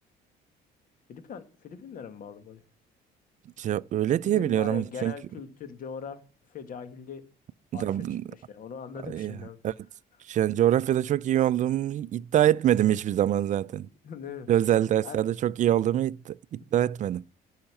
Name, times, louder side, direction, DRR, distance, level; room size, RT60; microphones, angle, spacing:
voice 1, 1.1-2.6 4.2-6.2 6.5-7.2 7.7-7.9 8.3-9.6 13.7-14.5 15.0-15.2, left 6 dB, 55° left, 1.9 m, -41 dB
voice 2, 3.6-5.1 7.7-8.2 9.1-9.3 9.6-9.7 10.3-13.9 14.5-17.2, right 11 dB, 45° right, 0.4 m, -25 dB
11.5 x 5.7 x 7.1 m
cardioid pair, 110°, 17 cm